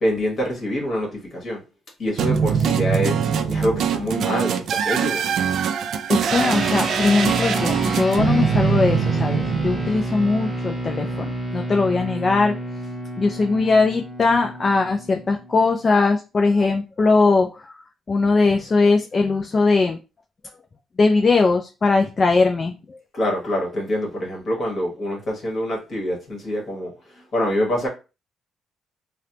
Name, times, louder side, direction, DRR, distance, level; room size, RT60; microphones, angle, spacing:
voice 1, 0.0-1.6 2.0-5.3 23.1-27.9, equal, 50° left, 1.3 m, -25 dB
sound 1, 2.2-10.4, right 7 dB, 70° right, 0.3 m, -23 dB
voice 2, 6.1-12.5 13.2-17.8 18.1-20.0 21.0-23.0, left 3 dB, 35° left, 0.3 m, -20 dB
sound 2, 6.3-15.9, right 1 dB, 10° right, 0.6 m, -30 dB
3.2 x 2.0 x 2.8 m
cardioid pair, 90°, 0 cm